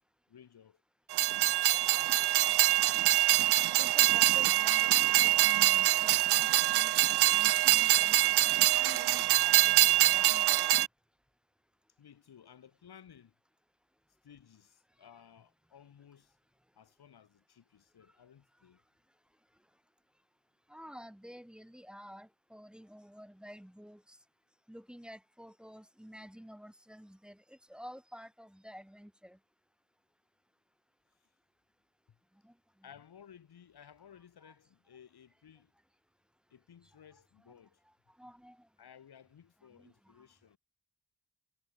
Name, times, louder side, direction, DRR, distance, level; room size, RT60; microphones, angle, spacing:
voice 1, 0.3-0.8 1.1-2.9 12.0-13.3 14.2-16.4 16.7-18.8 32.1-32.2 32.8-35.7 36.5-37.8 38.8-40.6, left 8 dB, 75° left, 5.6 m, -57 dB
Train, 1.1-10.9, right 14 dB, 85° right, 0.6 m, -25 dB
voice 2, 3.8-6.9 7.3-10.7 20.7-24.2 24.7-29.4 32.4-32.5 34.4-34.5 37.5-37.6 38.2-38.7 39.8-39.9, equal, ahead, 4.0 m, -50 dB
wide cardioid pair, 140°, 39 cm